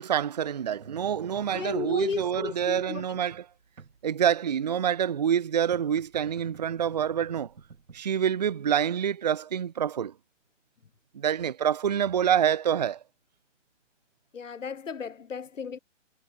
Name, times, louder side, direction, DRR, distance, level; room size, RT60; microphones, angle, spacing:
voice 1, 0.0-3.4 4.0-7.5 7.9-10.1 11.1-13.0, right 9 dB, 35° right, 0.6 m, -27 dB
sound 1, 0.8-8.8, right 5 dB, 80° right, 4.1 m, -51 dB
voice 2, 1.5-3.2 14.3-15.8, left 6 dB, 75° left, 2.1 m, -34 dB
hypercardioid pair, 160°, 38 cm